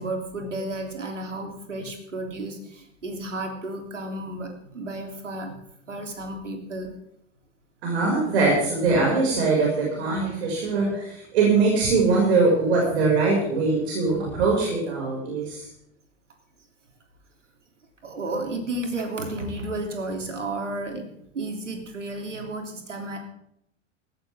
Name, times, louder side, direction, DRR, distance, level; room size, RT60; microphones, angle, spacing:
voice 1, 0.0-5.6 5.9-6.9 18.0-21.1 21.3-23.2, right 2 dB, 80° right, 3 dB, 3.3 m, -32 dB
voice 2, 7.8-15.6, right 3 dB, 60° right, -3 dB, 6.1 m, -22 dB
17.0 x 15.5 x 3.6 m, 0.76 s
figure-of-eight pair, 90°, 36 cm